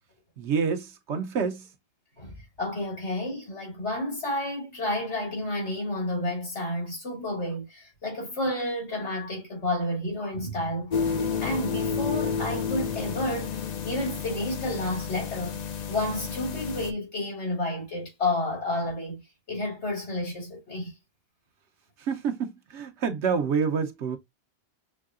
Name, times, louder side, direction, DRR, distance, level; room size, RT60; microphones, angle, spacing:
voice 1, 0.4-1.7 22.0-24.2, right 6 dB, 85° right, 1.1 m, -28 dB
voice 2, 2.6-11.1 11.4-15.6 15.9-19.2 19.5-20.9, left 1 dB, 80° left, 3.1 m, -30 dB
sound 1, 10.9-16.9, left 6 dB, 50° left, 0.6 m, -31 dB
6.2 x 2.8 x 2.4 m
omnidirectional pair, 1.1 m